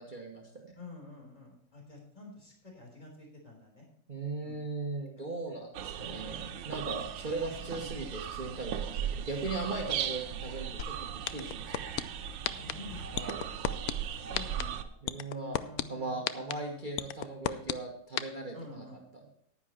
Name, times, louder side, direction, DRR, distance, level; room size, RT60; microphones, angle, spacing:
voice 1, 0.0-0.8 4.1-11.8 13.1-13.4 15.0-15.6 15.9-18.8 19.1-19.3, right 3 dB, 30° right, 0 dB, 1.3 m, -38 dB
voice 2, 0.7-3.9 4.4-4.6 5.2-5.8 7.8-8.1 10.1-10.5 12.5-13.5 13.8-14.9 15.3-16.8 18.5-19.0, left 3 dB, 20° left, 0 dB, 3.6 m, -49 dB
sound 1, 5.7-14.8, right 9 dB, 85° right, 1.5 m, -38 dB
sound 2, 10.8-10.9 11.3-12.0 12.4-12.7 13.2-13.9 14.3-14.6 15.1-15.8 16.3-16.5 17.0-17.7 18.2-18.3, left 13 dB, 75° left, 0.8 m, -30 dB
10.0 x 10.0 x 4.3 m, 0.65 s
omnidirectional pair, 2.0 m